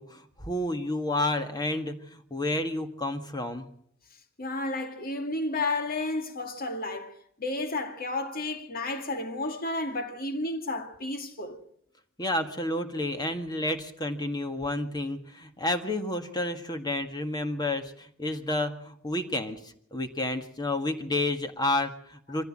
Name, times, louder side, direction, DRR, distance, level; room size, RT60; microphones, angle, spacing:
voice 1, 0.0-3.7 12.2-22.5, left 1 dB, 20° left, 1.8 m, -30 dB
voice 2, 4.4-7.1 7.4-11.6, left 2 dB, 45° left, 2.2 m, -32 dB
24.5 x 15.5 x 7.6 m
head